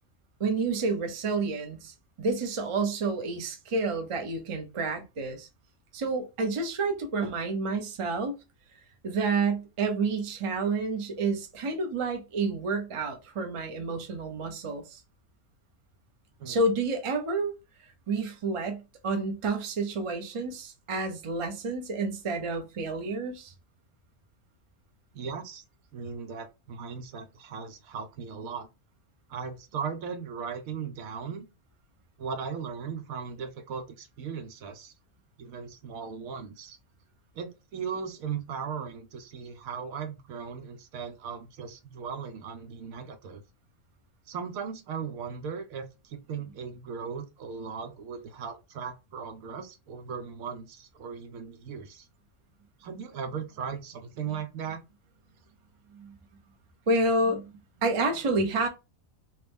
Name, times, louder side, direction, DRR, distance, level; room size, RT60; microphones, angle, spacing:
voice 1, 0.4-5.5 5.9-8.3 9.0-15.0 16.4-17.5 18.1-23.5 55.9-56.1 56.9-57.5 57.8-58.7, right 3 dB, 40° right, 0.4 m, -29 dB
voice 2, 25.1-25.6 25.9-28.7 29.3-31.4 32.2-34.9 35.4-36.8 37.3-43.4 44.3-52.1 52.8-54.8, right 6 dB, 80° right, 1.1 m, -37 dB
3.0 x 2.6 x 3.4 m
omnidirectional pair, 1.4 m